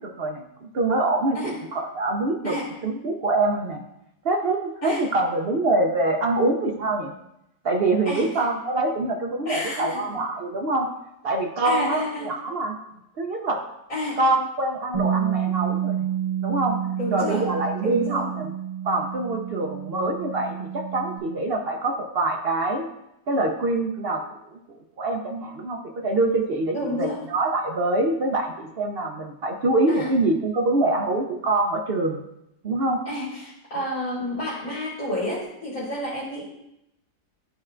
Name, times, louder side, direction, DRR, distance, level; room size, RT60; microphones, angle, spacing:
voice 1, 0.0-2.6 2.8-3.8 4.2-7.1 7.6-10.9 11.2-12.8 13.2-13.6 14.2-16.1 16.4-16.8 17.1-18.5 18.8-22.9 23.3-24.2 24.5-24.6 25.0-32.2 32.6-33.0, right 2 dB, 65° right, 2 dB, 0.5 m, -25 dB
voice 2, 8.0-8.4 9.5-10.2 11.6-12.3 13.9-14.2 17.0-17.5 17.8-18.3 26.7-27.2 29.9-30.1 33.1-36.4, left 1 dB, 55° left, -7 dB, 2.5 m, -30 dB
Bass guitar, 14.9-21.2, right 9 dB, 35° right, 2.3 m, -29 dB
12.0 x 4.3 x 2.5 m, 0.85 s
omnidirectional pair, 1.8 m